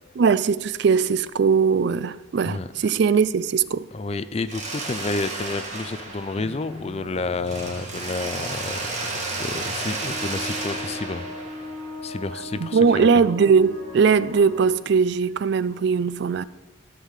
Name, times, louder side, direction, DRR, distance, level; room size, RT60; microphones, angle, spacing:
voice 1, 0.2-3.9 12.6-16.4, right 5 dB, 55° right, 0.3 m, -20 dB
voice 2, 3.9-11.3 12.0-13.1, left 3 dB, 30° left, 0.4 m, -30 dB
Mechanisms, 4.5-7.1 7.4-12.3, right 3 dB, 35° right, 1.7 m, -33 dB
sound 1, 6.3-14.7, left 1 dB, 90° right, 3.2 m, -39 dB
13.5 x 5.5 x 6.6 m
head